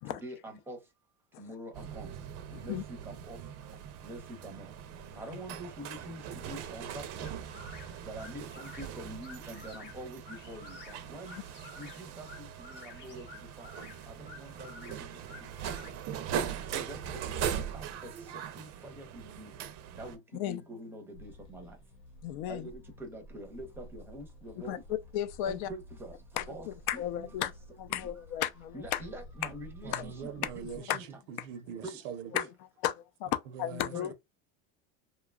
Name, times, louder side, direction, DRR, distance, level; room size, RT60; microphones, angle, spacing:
voice 1, 0.2-0.8 1.4-2.1 2.6-2.8 3.1-3.4 4.0-4.7 5.2-6.2 6.5-7.0 8.1-10.2 10.5-11.4 11.8-13.2 13.6-13.7 14.2-14.9 16.7-17.0 17.5-17.8 18.6-19.5 20.0-20.2 20.4-21.7 22.5-22.7 23.1-24.8 25.5-26.1 26.5-26.7 26.9-27.3 27.9-28.0 28.7-31.0 31.8-32.0 32.3-32.5 33.9-34.1, right 1 dB, 5° right, 0.6 m, -45 dB
sound 1, 1.7-20.2, right 8 dB, 50° right, 0.5 m, -40 dB
voice 2, 2.5-2.8 5.1-5.4 20.3-20.6 22.2-22.7 24.6-25.7 26.3-27.5 27.8-29.0 29.9-30.0 30.4-30.5 30.8-31.0 31.4-31.5 32.3-32.4 32.8-34.1, left 12 dB, 65° left, 0.5 m, -34 dB
sound 2, 7.2-15.9, left 3 dB, 30° left, 0.7 m, -52 dB
sound 3, 21.1-30.8, equal, 85° left, 1.0 m, -52 dB
voice 3, 29.8-31.0 31.3-32.3 33.5-34.0, right 7 dB, 85° right, 0.7 m, -42 dB
2.8 x 2.3 x 2.3 m
cardioid pair, 150°, 36 cm